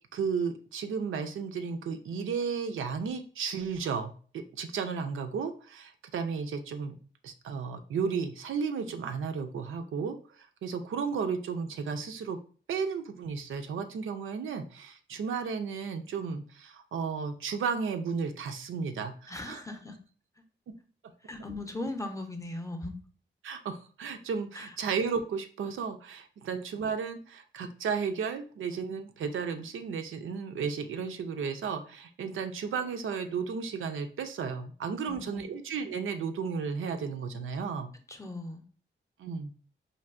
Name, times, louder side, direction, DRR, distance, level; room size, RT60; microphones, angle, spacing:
voice 1, 0.1-7.0 7.2-10.2 10.6-12.4 12.7-19.6 23.4-37.9 39.2-39.6, right 5 dB, 90° right, 6 dB, 0.5 m, -34 dB
voice 2, 19.3-20.0 21.2-23.0 24.6-24.7 35.0-35.5 38.1-38.6, left 2 dB, 15° left, 5 dB, 0.5 m, -38 dB
4.4 x 2.6 x 2.5 m, 0.42 s
wide cardioid pair, 105°, 20 cm